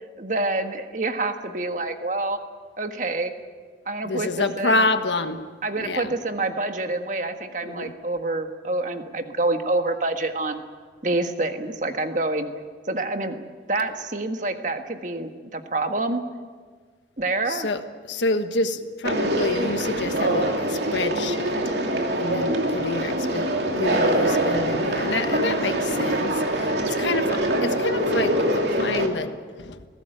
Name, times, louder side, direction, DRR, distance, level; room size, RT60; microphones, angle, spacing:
voice 1, 0.2-2.4 2.8-3.3 3.8-4.9 5.6-10.6 11.0-12.5 12.9-16.2 17.2-17.7, right 2 dB, 45° right, 6 dB, 1.6 m, -27 dB
voice 2, 4.0-5.4 5.8-6.1 7.6-7.9 17.5-17.8 18.1-21.5 22.1-29.8, left 2 dB, 85° left, 8 dB, 1.4 m, -28 dB
Conversation, 19.0-29.1, right 1 dB, 70° right, 2.8 m, -24 dB
21.5 x 17.0 x 9.1 m, 1.5 s
head